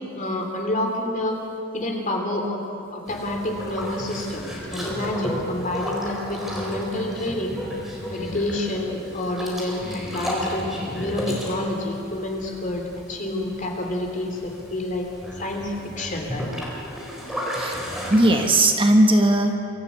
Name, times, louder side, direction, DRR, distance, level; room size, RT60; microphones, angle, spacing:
voice 1, 0.0-1.3 1.7-2.6 2.9-7.6 8.1-10.6 10.9-15.1 15.4-16.5, left 1 dB, 40° left, 2 dB, 3.1 m, -28 dB
Boat Water vehicle, 3.1-18.5, equal, ahead, 4.1 m, -33 dB
voice 2, 18.1-19.6, right 1 dB, 25° right, 4 dB, 1.4 m, -18 dB
23.5 x 14.0 x 8.2 m, 2.7 s
head